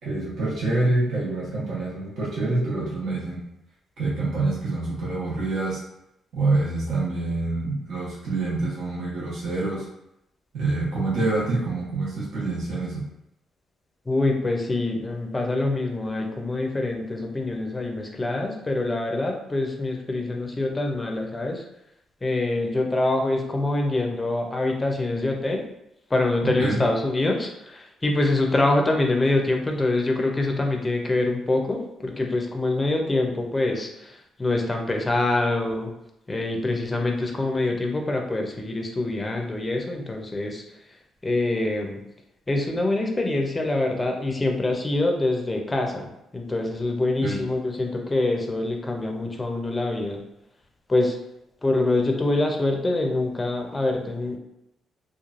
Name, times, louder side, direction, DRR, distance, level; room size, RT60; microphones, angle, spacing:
voice 1, 0.0-3.4 4.0-5.8 6.3-9.8 10.5-13.0 26.4-26.8 47.2-47.4, right 2 dB, 65° right, -8 dB, 1.0 m, -26 dB
voice 2, 14.1-21.6 22.2-25.7 26.1-35.9 36.3-40.6 41.2-42.0 42.5-50.2 50.9-51.2 51.6-54.4, left 2 dB, 20° left, 2 dB, 0.5 m, -25 dB
3.0 x 2.2 x 2.4 m, 0.82 s
cardioid pair, 90°, 0 cm